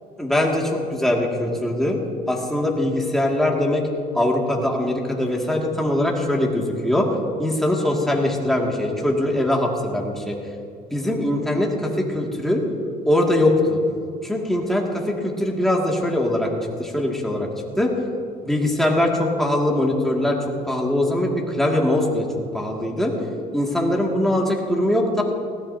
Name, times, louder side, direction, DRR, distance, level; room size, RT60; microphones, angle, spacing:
voice 1, 0.2-2.0 2.3-3.8 4.1-7.1 7.4-10.4 10.9-12.6 13.1-13.8 14.2-16.5 16.8-17.5 17.8-17.9 18.4-20.4 20.7-22.3 22.5-23.1 23.5-25.2, left 1 dB, ahead, -2 dB, 2.3 m, -22 dB
19.5 x 16.5 x 2.8 m, 2.3 s
cardioid pair, 110°, 17 cm